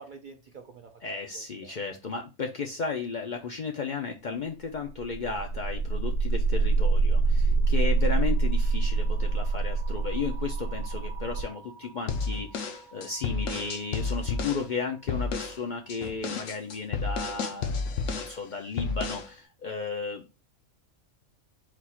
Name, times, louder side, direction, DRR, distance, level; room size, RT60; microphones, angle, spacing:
voice 1, 0.0-1.8 7.4-7.7, right 4 dB, 55° right, 0.5 m, -49 dB
voice 2, 1.0-17.8 18.1-20.3, left 5 dB, 55° left, 0.5 m, -34 dB
sound 1, 4.9-14.8, right 4 dB, 80° right, 1.0 m, -27 dB
sound 2, 12.1-14.7 15.1-15.6 15.9-18.4 18.8-19.3, left 4 dB, 75° left, 0.9 m, -31 dB
4.1 x 2.4 x 4.2 m
omnidirectional pair, 1.3 m